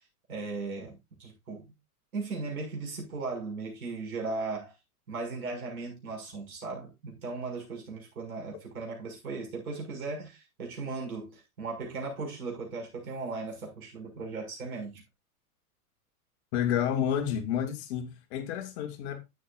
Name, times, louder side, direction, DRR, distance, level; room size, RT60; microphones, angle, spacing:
voice 1, 0.3-1.7 2.1-4.7 5.1-15.0, right 3 dB, 65° right, 6.5 m, -37 dB
voice 2, 16.5-19.2, left 9 dB, 45° left, 2.1 m, -30 dB
11.5 x 9.4 x 2.6 m
figure-of-eight pair, 90°, 46 cm